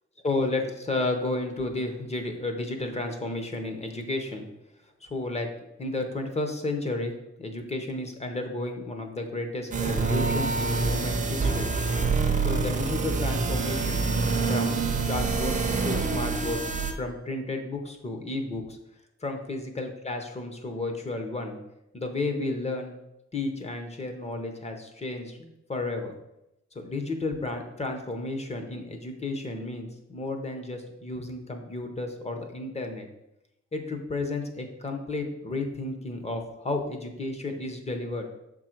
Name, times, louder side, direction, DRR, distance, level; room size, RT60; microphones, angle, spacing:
voice 1, 0.2-4.5 5.0-5.5 5.8-7.1 7.4-11.7 12.4-14.1 14.5-15.5 15.8-16.6 17.0-18.8 19.2-21.6 21.9-22.9 23.3-26.1 26.7-33.1 33.7-38.3, left 2 dB, 20° left, 5 dB, 0.7 m, -32 dB
sound 1, 9.7-16.9, right 4 dB, 25° right, 0.6 m, -26 dB
6.8 x 3.8 x 4.4 m, 0.88 s
wide cardioid pair, 175°, 29 cm